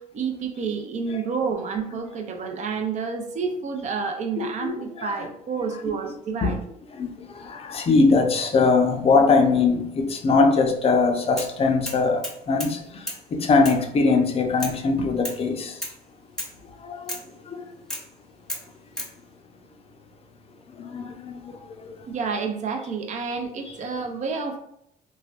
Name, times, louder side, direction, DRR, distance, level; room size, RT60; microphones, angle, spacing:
voice 1, 0.0-6.6 22.1-24.6, right 5 dB, 45° right, 0.5 m, -29 dB
voice 2, 4.4-5.3 6.4-6.6 6.9-15.8 16.8-17.7 20.7-22.0, left 4 dB, 35° left, 0.5 m, -22 dB
sound 1, 11.4-11.6 11.8-12.8 13.1-13.2 13.6-13.8 14.6-14.8 15.2-15.4 15.8-16.0 16.4-16.6 17.1-17.3 17.9-18.1 18.5-19.1, equal, 5° left, 0.8 m, -33 dB
3.2 x 2.2 x 2.4 m
cardioid pair, 110°, 17 cm